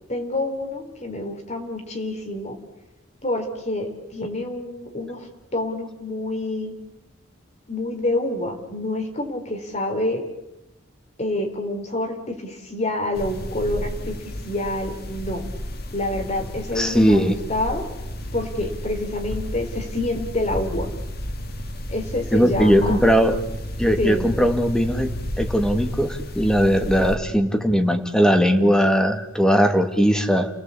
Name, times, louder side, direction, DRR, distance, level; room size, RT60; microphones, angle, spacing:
voice 1, 0.1-2.6 3.2-5.3 5.5-6.8 7.7-10.2 11.2-14.2 14.4-15.4 15.9-17.8 18.3-20.9 21.9-23.0 24.0-24.3, left 1 dB, 35° left, 5 dB, 3.9 m, -27 dB
sound 1, 13.1-27.2, equal, 50° left, 2.4 m, -32 dB
voice 2, 16.8-17.4 22.3-23.4 23.8-30.5, equal, 5° left, 6 dB, 2.0 m, -19 dB
29.5 x 18.5 x 8.4 m, 0.94 s
head